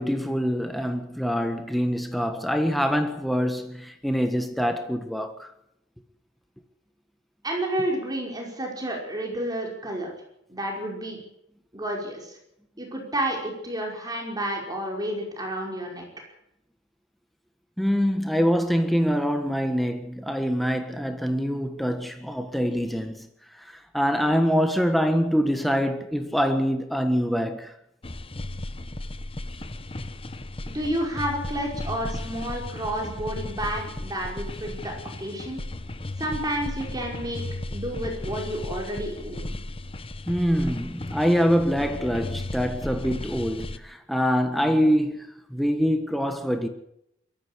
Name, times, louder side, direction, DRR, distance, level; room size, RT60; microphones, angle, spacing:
voice 1, 0.0-5.5 17.8-23.3 23.6-27.7 40.3-46.7, equal, ahead, 1.5 m, -25 dB
voice 2, 7.4-10.1 10.5-11.2 11.7-12.4 12.8-16.1 30.7-35.6 36.2-37.4 37.7-39.6, right 1 dB, 20° right, 5.4 m, -30 dB
sound 1, 28.0-43.8, left 1 dB, 30° left, 1.0 m, -35 dB
22.5 x 14.5 x 8.4 m
head